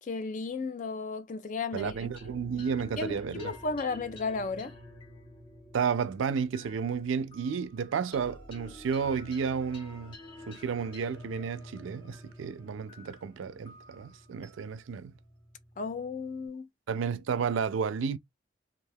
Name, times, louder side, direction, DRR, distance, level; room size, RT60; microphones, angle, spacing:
voice 1, 0.0-2.1 3.0-4.7 15.8-16.7, left 4 dB, 40° left, 0.4 m, -34 dB
voice 2, 1.7-3.5 5.7-10.2 10.5-15.1 16.9-18.2, right 6 dB, 90° right, 0.4 m, -32 dB
sound 1, 1.8-16.5, left 1 dB, 25° left, 0.8 m, -50 dB
2.4 x 2.3 x 3.3 m
head